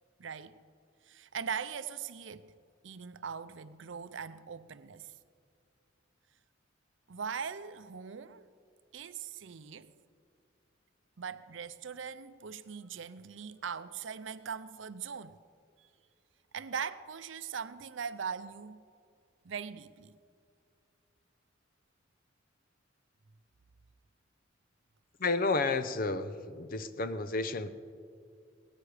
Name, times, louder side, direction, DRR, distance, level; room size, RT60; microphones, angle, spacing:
voice 1, 0.2-0.6 1.0-2.5 2.8-5.1 7.1-8.4 8.9-9.9 11.2-15.4 15.8-15.9 16.5-18.8 19.4-20.1, right 6 dB, 70° right, 0.6 m, -40 dB
voice 2, 25.2-27.7, left 3 dB, 45° left, 0.7 m, -31 dB
18.0 x 14.5 x 5.0 m
head